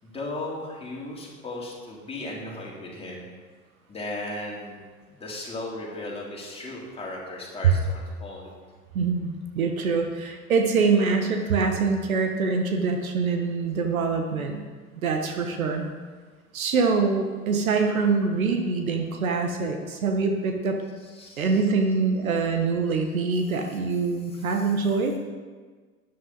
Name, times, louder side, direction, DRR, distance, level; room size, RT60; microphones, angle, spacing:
voice 1, 0.0-3.2 3.9-8.5 20.8-21.7 22.4-22.5 22.9-23.0 23.3-24.9, left 2 dB, 15° left, -4 dB, 3.3 m, -37 dB
voice 2, 8.9-14.6 15.0-15.9 16.5-20.8 21.4-25.1, right 4 dB, 65° right, 4 dB, 1.4 m, -24 dB
13.0 x 10.5 x 4.1 m, 1.5 s
figure-of-eight pair, 85°, 44 cm